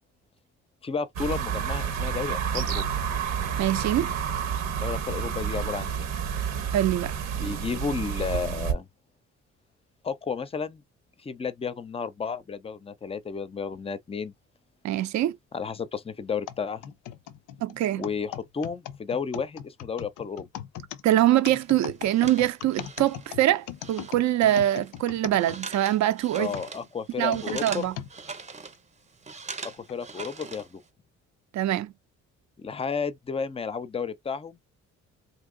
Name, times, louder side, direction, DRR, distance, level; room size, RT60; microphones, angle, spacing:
voice 1, 0.8-2.9 4.8-6.1 7.3-8.9 10.0-10.8 11.2-14.3 15.5-16.9 18.0-20.5 26.4-27.9 29.6-30.8 32.6-34.6, left 5 dB, 20° left, 0.4 m, -32 dB
sound 1, 1.2-8.7, right 7 dB, 85° right, 1.0 m, -29 dB
voice 2, 3.6-4.1 6.7-7.1 14.8-15.4 17.6-18.0 21.0-26.5 27.2-27.9 31.5-31.9, right 13 dB, 65° right, 0.5 m, -24 dB
sound 2, 16.5-26.0 26.5-28.1 28.7-28.8 29.7-30.0, left 11 dB, 90° left, 0.5 m, -40 dB
sound 3, 21.6-30.9, right 4 dB, 25° right, 0.6 m, -42 dB
2.7 x 2.7 x 3.7 m
cardioid pair, 90°, 30 cm